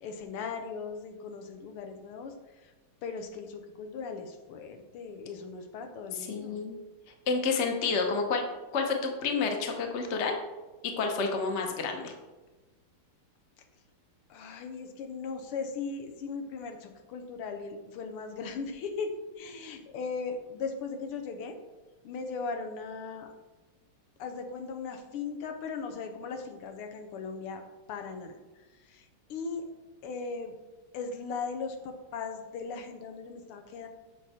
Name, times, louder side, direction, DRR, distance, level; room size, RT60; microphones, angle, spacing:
voice 1, 0.0-2.3 2.6-2.7 3.0-6.6 14.3-21.6 22.0-23.3 24.2-27.6 27.9-28.3 28.9-29.7 30.0-30.6 30.9-33.9, left 5 dB, 90° left, 5 dB, 1.8 m, -38 dB
voice 2, 6.1-6.8 7.3-8.4 8.7-10.4 10.8-12.1, left 4 dB, 45° left, 4 dB, 1.0 m, -29 dB
8.0 x 6.3 x 4.2 m, 1.2 s
omnidirectional pair, 2.4 m